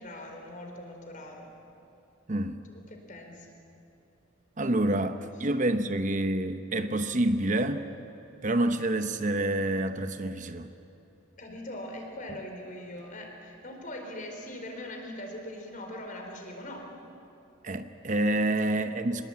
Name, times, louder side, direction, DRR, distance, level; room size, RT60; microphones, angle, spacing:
voice 1, 0.0-1.5 2.7-3.5 11.4-16.9 18.6-18.7, left 1 dB, 40° left, 2 dB, 4.4 m, -41 dB
voice 2, 2.3-2.6 4.6-7.9 8.4-10.7 17.6-19.2, right 1 dB, 40° right, 9 dB, 0.9 m, -28 dB
24.5 x 20.5 x 8.6 m, 2.9 s
head